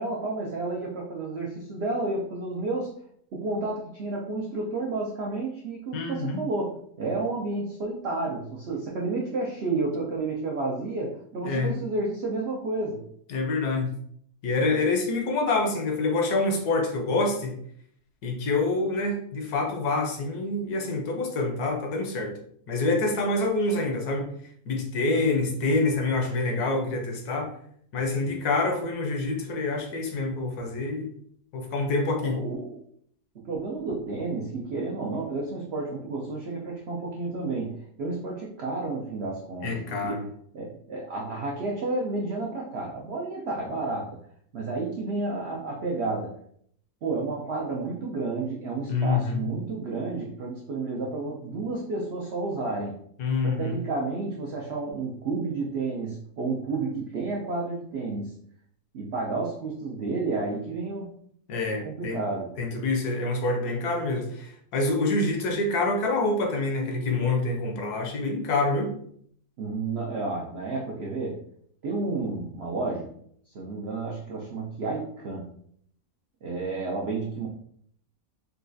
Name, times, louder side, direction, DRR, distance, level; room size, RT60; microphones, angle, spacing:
voice 1, 0.0-2.9 3.3-13.0 32.2-32.8 33.4-40.3 40.5-44.2 44.5-46.3 47.0-52.9 53.4-58.4 58.9-61.2 61.8-62.5 69.6-71.4 71.8-73.1 73.5-75.5 76.4-77.5, right 3 dB, 85° right, -2 dB, 0.5 m, -31 dB
voice 2, 5.9-6.4 11.4-11.7 13.3-13.9 14.4-17.5 18.2-22.3 22.7-24.3 24.7-27.5 27.9-31.1 31.5-32.4 39.6-40.3 48.9-49.4 53.2-53.8 61.5-62.2 62.6-68.9, left 3 dB, 70° left, 2 dB, 1.2 m, -26 dB
4.0 x 2.3 x 2.6 m, 0.64 s
omnidirectional pair, 1.7 m